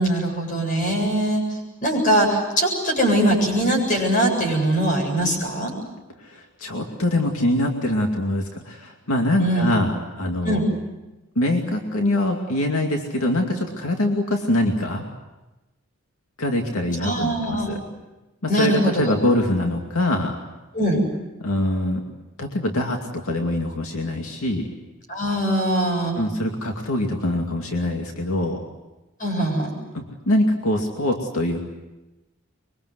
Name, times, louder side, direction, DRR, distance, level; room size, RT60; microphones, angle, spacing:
voice 1, 0.0-1.4 1.8-5.7 9.4-9.7 10.4-10.6 17.0-17.7 18.5-19.1 20.7-21.0 25.1-26.1 29.2-29.7, right 1 dB, 35° left, 1 dB, 8.0 m, -21 dB
voice 2, 6.2-10.6 11.4-15.1 16.4-17.8 18.4-20.4 21.4-22.0 22.4-24.7 26.1-28.6 29.9-31.6, left 1 dB, 85° left, 2 dB, 2.5 m, -23 dB
25.0 x 23.5 x 8.0 m, 1.1 s
head